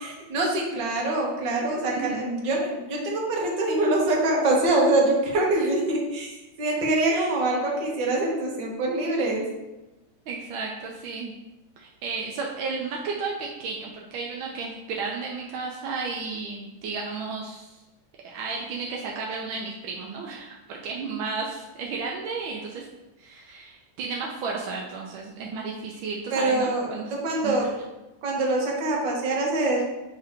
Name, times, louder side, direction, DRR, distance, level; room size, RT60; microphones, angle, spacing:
voice 1, 0.0-6.3 6.6-9.4 26.3-27.7 28.2-29.8, right 2 dB, 70° right, -2 dB, 1.9 m, -24 dB
voice 2, 1.9-2.3 5.6-5.7 7.1-7.3 10.3-11.3 11.8-17.8 18.2-22.8 23.2-27.5, right 4 dB, 85° right, -1 dB, 1.5 m, -33 dB
7.1 x 2.8 x 5.0 m, 1.0 s
omnidirectional pair, 2.1 m